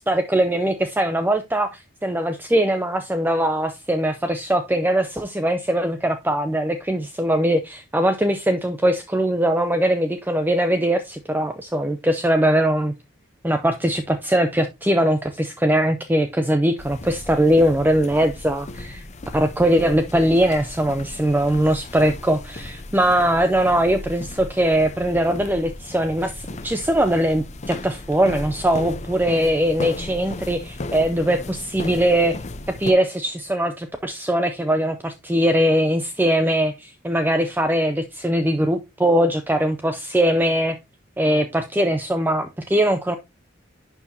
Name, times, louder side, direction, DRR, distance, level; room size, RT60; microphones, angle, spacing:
voice 1, 0.1-12.9 13.4-19.1 19.3-32.4 32.7-40.8 41.2-43.2, right 1 dB, 10° right, 0.5 m, -21 dB
sound 1, 16.8-32.9, left 2 dB, 35° left, 0.6 m, -35 dB
11.0 x 4.7 x 2.7 m
head